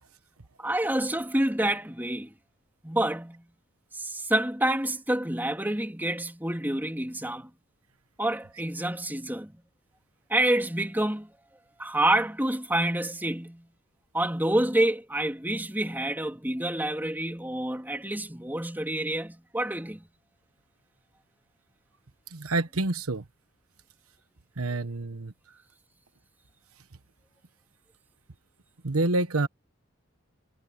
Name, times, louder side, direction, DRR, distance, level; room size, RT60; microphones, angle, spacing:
voice 1, 0.6-2.3 2.8-3.4 3.9-7.5 8.2-9.6 10.3-11.3 11.8-13.7 14.1-20.0, right 1 dB, 10° right, 3.2 m, -28 dB
voice 2, 22.3-23.2 24.6-25.3 28.8-29.5, right 2 dB, 85° right, 1.2 m, -27 dB
head